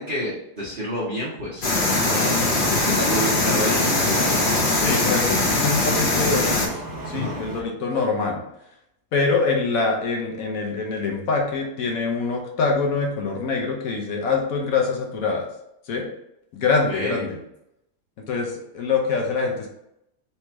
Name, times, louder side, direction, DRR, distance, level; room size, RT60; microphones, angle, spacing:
voice 1, 0.0-2.4 2.8-4.5 7.1-7.3 7.9-8.0 16.9-17.2, equal, 40° right, -7 dB, 0.9 m, -29 dB
sound 1, 1.6-6.7, left 2 dB, 45° left, 0.7 m, -21 dB
sound 2, 1.8-7.6, right 1 dB, 20° right, 0.6 m, -32 dB
voice 2, 4.8-6.8 7.1-8.4 9.1-15.5 15.9-16.1 16.5-17.4 18.2-19.7, left 4 dB, 65° left, 1 dB, 1.1 m, -24 dB
3.4 x 3.0 x 4.4 m, 0.82 s
omnidirectional pair, 1.8 m